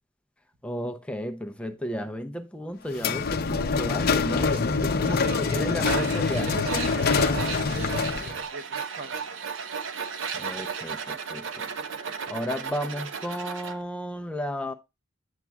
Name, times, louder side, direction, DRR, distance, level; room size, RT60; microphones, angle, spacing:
voice 1, 0.6-6.6 10.3-11.7 12.3-14.7, equal, 5° left, 0.5 m, -33 dB
sound 1, 2.9-8.4, left 4 dB, 50° left, 0.6 m, -25 dB
voice 2, 4.4-6.1 6.4-9.4, right 3 dB, 50° right, 0.9 m, -39 dB
Tools, 5.8-13.8, right 6 dB, 80° right, 0.7 m, -34 dB
8.2 x 7.2 x 2.2 m
head